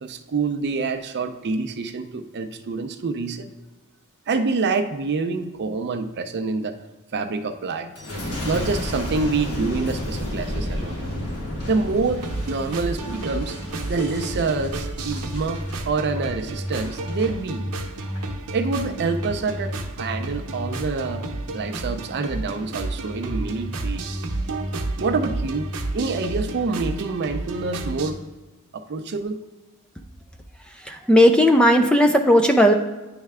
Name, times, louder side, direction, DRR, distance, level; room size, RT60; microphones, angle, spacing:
voice 1, 0.0-3.5 4.3-6.8 7.1-7.9 8.4-11.0 11.7-13.6 13.9-17.7 18.5-21.3 21.5-24.2 25.0-25.7 25.9-28.2 28.7-29.4, right 4 dB, 50° right, 8 dB, 0.5 m, -26 dB
Boom, 8.0-17.3 17.8-18.3, left 1 dB, 75° left, 1.4 m, -32 dB
sound 1, 12.2-28.1, right 2 dB, 85° right, 0.8 m, -31 dB
voice 2, 30.9-32.7, equal, 5° left, 5 dB, 0.3 m, -15 dB
9.5 x 3.3 x 3.5 m, 1.2 s
head